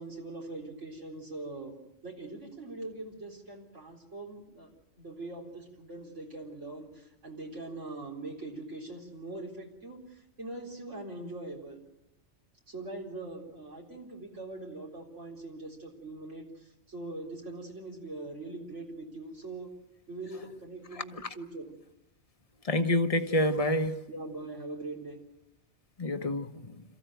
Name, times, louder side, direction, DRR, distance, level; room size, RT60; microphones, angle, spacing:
voice 1, 0.0-1.8 2.0-4.7 5.0-11.8 12.7-19.7 20.1-21.7 24.1-25.2, right 2 dB, 80° right, -1 dB, 4.3 m, -42 dB
voice 2, 22.6-24.0 26.0-26.8, left 1 dB, 30° left, 8 dB, 1.2 m, -28 dB
27.5 x 15.0 x 9.2 m, 0.92 s
omnidirectional pair, 1.2 m